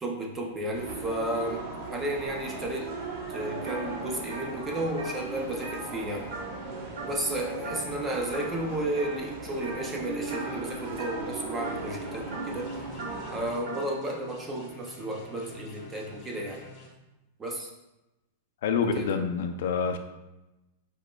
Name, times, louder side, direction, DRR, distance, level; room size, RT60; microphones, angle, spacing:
voice 1, 0.0-2.9 3.3-6.3 7.0-12.9 13.3-16.6 17.4-17.7 18.8-19.3, right 1 dB, 10° right, 0 dB, 0.5 m, -33 dB
sound 1, 0.7-13.5, right 2 dB, 30° right, 0.9 m, -38 dB
sound 2, 3.7-3.9 4.2-6.7 7.0-7.3 7.6-8.0 8.3-9.1 9.6-9.9 10.3-13.9, right 3 dB, 90° right, 1.3 m, -40 dB
sound 3, 12.5-16.9, left 1 dB, 25° left, 0.7 m, -47 dB
voice 2, 18.6-20.0, left 6 dB, 55° left, 6 dB, 0.5 m, -27 dB
5.1 x 4.2 x 2.2 m, 0.97 s
supercardioid pair, 180°, 0 cm